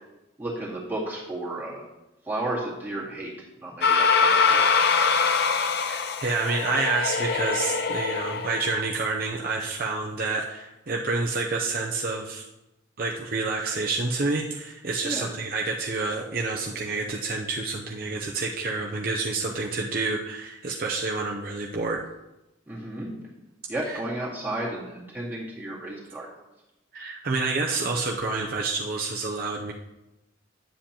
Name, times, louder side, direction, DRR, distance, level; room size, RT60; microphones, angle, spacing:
voice 1, 0.4-1.9 2.2-3.3 3.6-4.9 15.0-15.3 22.7-23.1 23.7-26.3, right 1 dB, 10° right, -6 dB, 2.0 m, -33 dB
sound 1, 3.8-8.9, left 5 dB, 55° left, 0.6 m, -23 dB
voice 2, 5.8-12.4 13.0-22.0 23.9-24.0 26.9-29.7, right 3 dB, 45° right, -1 dB, 0.6 m, -28 dB
10.0 x 7.6 x 2.9 m, 0.99 s
head